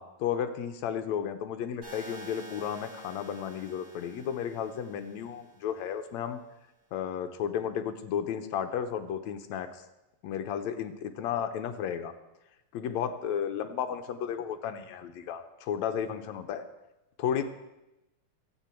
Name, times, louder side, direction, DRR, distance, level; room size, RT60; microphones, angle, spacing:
voice 1, 0.0-6.4 6.9-9.8 10.2-12.1 12.7-16.7 17.2-17.4, left 8 dB, 75° left, 8 dB, 2.0 m, -33 dB
sound 1, 1.8-5.8, right 1 dB, 60° right, 5.6 m, -48 dB
24.5 x 8.5 x 4.4 m, 0.95 s
omnidirectional pair, 3.4 m